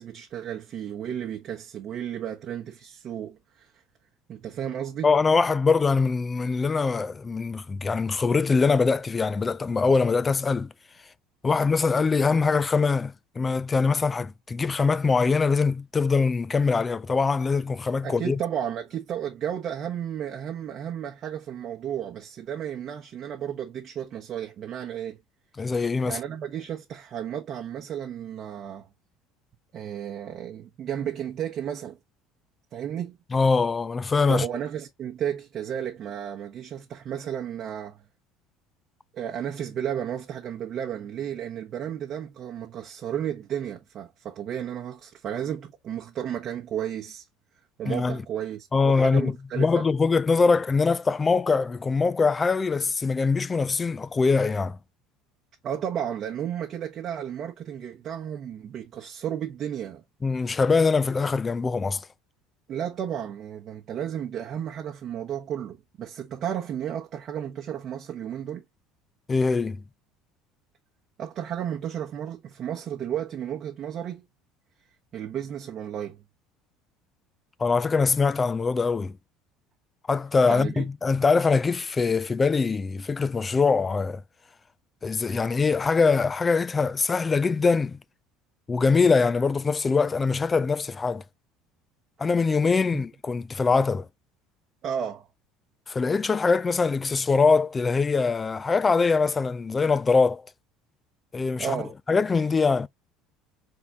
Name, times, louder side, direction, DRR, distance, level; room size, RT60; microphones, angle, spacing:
voice 1, 0.0-3.7 4.3-5.1 18.0-25.2 26.0-28.9 29.7-32.0 32.7-33.2 34.3-38.0 39.1-47.2 47.8-49.8 55.6-60.0 62.7-68.6 71.2-74.2 75.1-76.2 80.5-80.8 92.9-93.0 94.8-95.3 101.6-101.9, right 9 dB, 50° right, 1.0 m, -33 dB
voice 2, 5.0-10.7 11.4-18.4 25.6-26.2 33.3-34.5 47.8-48.2 48.7-54.8 60.2-62.1 69.3-69.8 77.6-79.2 80.1-84.2 85.0-88.0 88.7-91.2 92.2-94.1 95.9-100.4 101.3-101.8 102.1-102.9, left 4 dB, 25° left, 0.3 m, -23 dB
4.0 x 3.6 x 3.0 m
supercardioid pair, 90°, 0 cm